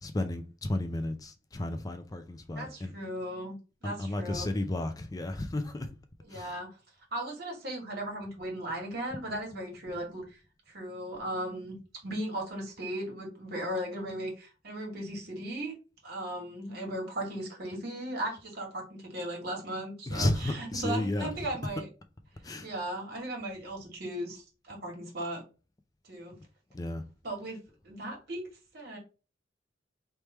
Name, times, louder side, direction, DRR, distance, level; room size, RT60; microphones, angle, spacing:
voice 1, 0.0-2.9 3.8-5.9 6.3-6.5 20.1-21.3 22.4-22.7 26.7-27.0, left 1 dB, 20° left, 0.4 m, -32 dB
voice 2, 2.6-3.5 3.8-4.5 6.2-6.7 7.1-10.4 10.7-11.8 12.0-15.7 16.0-21.9 22.6-25.4 26.0-26.3 27.2-27.6 27.8-28.5 28.7-29.0, right 1 dB, 60° right, 2.0 m, -37 dB
3.4 x 3.1 x 4.2 m
head